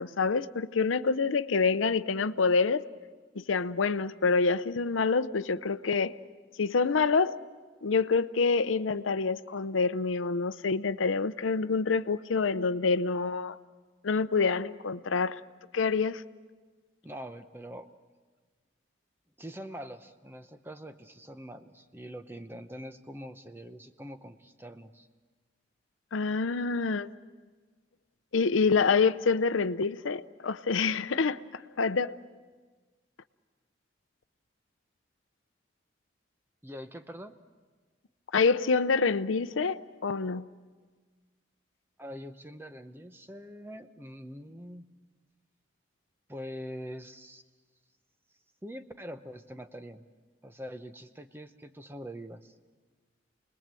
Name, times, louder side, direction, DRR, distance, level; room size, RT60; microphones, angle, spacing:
voice 1, 0.0-2.8 3.4-6.1 6.6-7.4 7.8-13.6 14.0-15.4 15.7-16.2 26.1-27.1 28.3-32.1 38.3-40.4, left 4 dB, 90° left, 0.7 m, -27 dB
voice 2, 17.0-17.9 19.4-25.1 36.6-37.4 42.0-44.9 46.3-47.4 48.6-50.1 50.4-52.5, equal, 10° right, 0.8 m, -44 dB
29.5 x 20.5 x 7.6 m
head